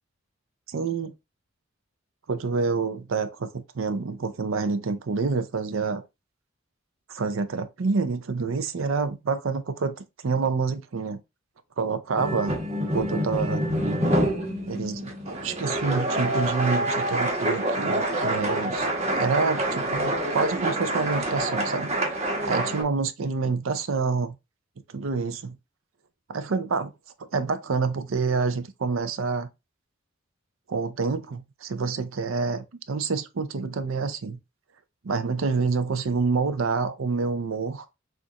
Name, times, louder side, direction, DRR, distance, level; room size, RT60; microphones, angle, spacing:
voice 1, 0.7-1.1 2.3-6.0 7.1-11.2 11.8-12.6 12.9-13.6 14.7-18.9 19.2-21.9 22.5-24.3 24.9-25.6 26.3-26.9 27.3-29.5 30.7-34.4 35.0-37.8, right 4 dB, 85° right, 0.6 m, -27 dB
sound 1, 12.2-22.8, right 1 dB, 35° right, 1.1 m, -27 dB
6.3 x 2.5 x 2.8 m
head